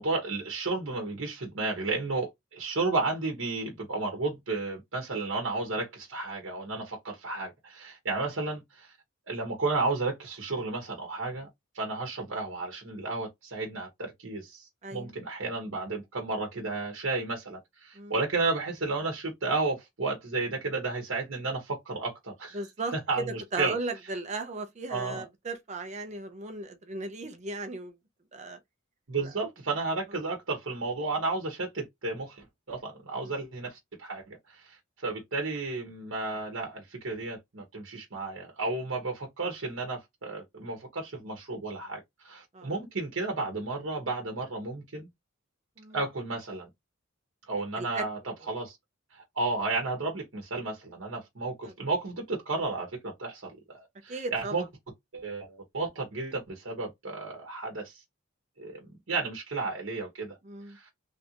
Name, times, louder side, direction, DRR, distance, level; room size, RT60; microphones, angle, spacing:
voice 1, 0.0-8.9 9.3-11.5 11.7-22.6 22.9-23.8 24.9-25.2 29.1-45.1 45.9-46.7 47.5-48.2 48.5-48.8 49.1-54.6 55.1-58.0 58.6-60.4 60.7-60.9, right 3 dB, 70° right, 1.0 m, -33 dB
voice 2, 14.8-15.1 17.9-18.1 22.5-23.3 23.5-27.9 28.3-28.6 29.2-29.3 33.1-33.3 42.5-42.7 45.8-46.0 47.8-48.1 51.6-51.7 54.1-54.5 60.4-60.8, right 3 dB, 35° right, 0.6 m, -36 dB
3.3 x 2.5 x 2.8 m
head